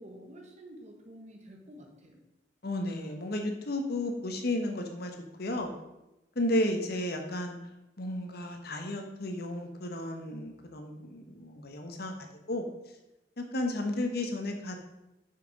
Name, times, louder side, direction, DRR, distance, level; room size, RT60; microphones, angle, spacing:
voice 1, 0.0-2.2, equal, 40° right, 2 dB, 1.3 m, -49 dB
voice 2, 2.6-5.7 6.4-7.6 8.0-12.7 13.4-14.8, left 1 dB, 60° left, 4 dB, 1.1 m, -33 dB
6.1 x 5.8 x 5.1 m, 0.93 s
head